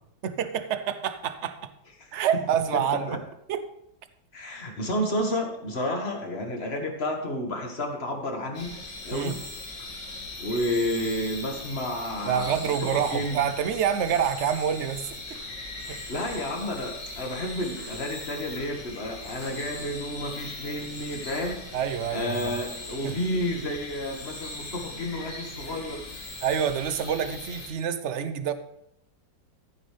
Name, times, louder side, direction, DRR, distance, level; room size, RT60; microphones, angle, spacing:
voice 1, 0.2-1.7 2.1-3.2 3.5-3.6 9.1-9.4 12.2-15.1 15.9-16.0 21.7-22.5 23.0-23.2 26.4-28.5, right 8 dB, 55° right, 11 dB, 0.8 m, -27 dB
voice 2, 4.3-8.8 9.0-9.4 10.4-13.4 15.9-21.6 22.1-26.0, left 1 dB, 35° left, 2 dB, 1.9 m, -31 dB
sound 1, 8.5-27.7, left 2 dB, 75° left, 2.8 m, -40 dB
14.0 x 9.2 x 3.4 m, 0.78 s
omnidirectional pair, 1.9 m